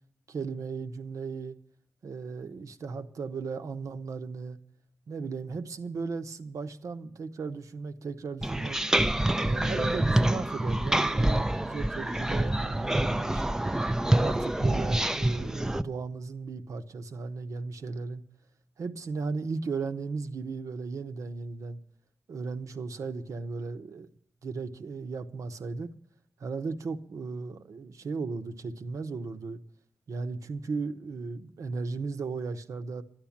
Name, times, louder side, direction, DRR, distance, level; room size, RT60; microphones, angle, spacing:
voice 1, 0.3-1.5 2.0-4.6 5.1-8.8 9.4-13.4 14.0-18.2 18.8-21.8 22.3-24.1 24.4-25.9 26.4-29.6 30.1-33.0, right 4 dB, 80° right, 1.0 m, -36 dB
sound 1, 8.4-15.8, right 1 dB, 10° right, 0.5 m, -26 dB
12.0 x 11.0 x 7.2 m
wide cardioid pair, 110°, 5 cm